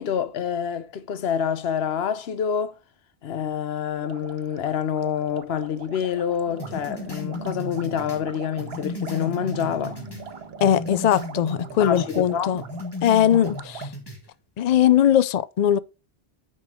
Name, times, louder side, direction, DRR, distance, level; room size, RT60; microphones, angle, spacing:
voice 1, 0.0-2.7 3.2-10.0 11.8-12.6, left 8 dB, 80° left, 1.0 m, -27 dB
sound 1, 4.0-13.9, right 6 dB, 75° right, 1.0 m, -42 dB
sound 2, 6.5-12.8, right 3 dB, 35° right, 1.3 m, -43 dB
sound 3, 6.6-10.3 10.6-12.2 12.6-14.2, left 2 dB, 25° left, 1.7 m, -35 dB
voice 2, 10.6-12.6 13.0-13.9 14.6-15.8, left 10 dB, 55° left, 0.5 m, -20 dB
9.7 x 5.2 x 3.5 m
omnidirectional pair, 1.0 m